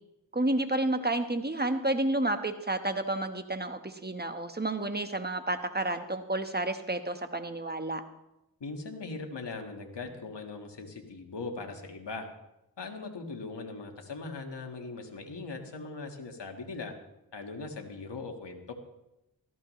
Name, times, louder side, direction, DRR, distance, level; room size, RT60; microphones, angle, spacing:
voice 1, 0.3-8.0, right 2 dB, 25° right, 8 dB, 1.3 m, -30 dB
voice 2, 8.6-12.3 12.8-16.9 17.3-18.7, left 3 dB, 85° left, 3 dB, 1.7 m, -40 dB
17.0 x 14.0 x 3.2 m, 0.89 s
cardioid pair, 40°, 41 cm